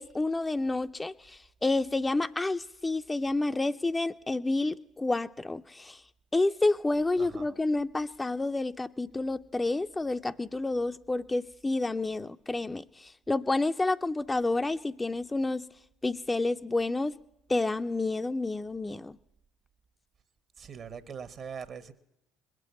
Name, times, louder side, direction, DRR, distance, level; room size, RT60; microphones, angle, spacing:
voice 1, 0.0-6.0 6.3-15.6 16.0-17.2 17.5-19.2, left 2 dB, 15° left, 0.5 m, -29 dB
voice 2, 7.2-7.5 20.6-21.9, right 6 dB, 50° right, 1.1 m, -42 dB
20.5 x 7.6 x 8.2 m
hypercardioid pair, 55°, 0 cm